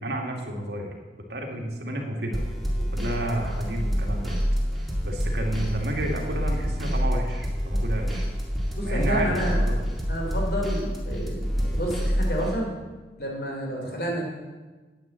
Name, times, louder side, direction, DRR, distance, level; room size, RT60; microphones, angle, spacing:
voice 1, 0.0-0.9 1.3-2.4 2.9-4.4 5.0-8.3 8.8-9.7, right 1 dB, 75° right, 1 dB, 2.3 m, -31 dB
sound 1, 2.3-12.6, equal, ahead, 1.9 m, -27 dB
voice 2, 8.7-9.6 10.1-12.7 13.2-14.3, equal, 60° left, 0 dB, 3.2 m, -30 dB
9.7 x 9.3 x 7.6 m, 1.3 s
head